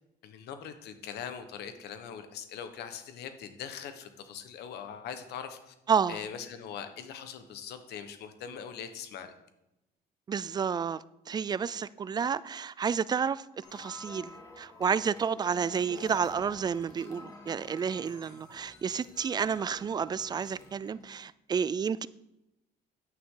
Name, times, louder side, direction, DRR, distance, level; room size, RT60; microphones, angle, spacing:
voice 1, 0.2-5.7 6.1-9.3, left 8 dB, 75° left, 1.2 m, -41 dB
voice 2, 5.9-6.2 10.3-13.4 13.7-22.1, right 6 dB, 25° right, 0.3 m, -30 dB
sound 1, 13.6-21.0, left 2 dB, 20° left, 2.2 m, -50 dB
9.6 x 9.2 x 3.8 m
cardioid pair, 110°, 17 cm